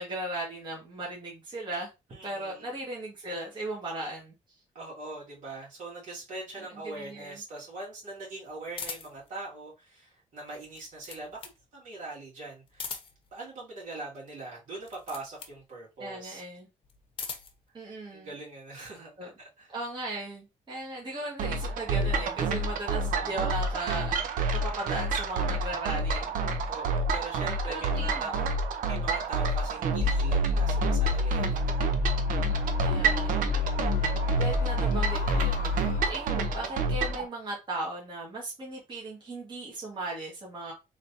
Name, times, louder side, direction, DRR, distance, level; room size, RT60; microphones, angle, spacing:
voice 1, 0.0-1.9 2.2-4.3 6.7-7.4 16.0-16.7 17.7-18.3 19.2-19.3 19.7-24.1 24.5-26.3 27.7-28.3 32.8-33.4 34.3-40.7, right 2 dB, 35° right, 1.6 m, -37 dB
voice 2, 2.1-2.8 4.7-12.9 13.3-16.4 18.1-19.7 23.1-23.4 26.7-28.6 28.8-31.8, right 2 dB, 70° right, 2.5 m, -42 dB
sound 1, 8.8-9.3 10.6-11.6 12.7-13.3 14.8-15.6 16.8-17.6, left 5 dB, 40° left, 0.8 m, -40 dB
sound 2, 21.4-37.2, right 3 dB, 85° right, 0.7 m, -29 dB
sound 3, 30.0-36.9, left 3 dB, 75° left, 0.8 m, -29 dB
3.9 x 3.4 x 2.7 m
cardioid pair, 130°, 14 cm